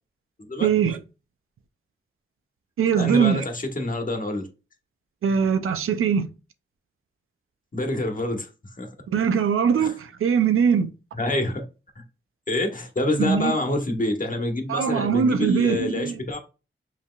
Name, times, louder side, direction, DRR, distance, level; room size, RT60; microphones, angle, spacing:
voice 1, 0.6-1.0 2.8-3.4 5.2-6.3 9.1-10.9 13.2-13.6 14.7-16.2, right 7 dB, 90° right, 0.5 m, -21 dB
voice 2, 3.0-4.5 7.7-8.9 9.8-9.9 11.2-11.6 12.0-12.1 12.5-16.4, left 1 dB, 40° left, 1.3 m, -27 dB
5.4 x 3.4 x 2.3 m
cardioid pair, 50°, 21 cm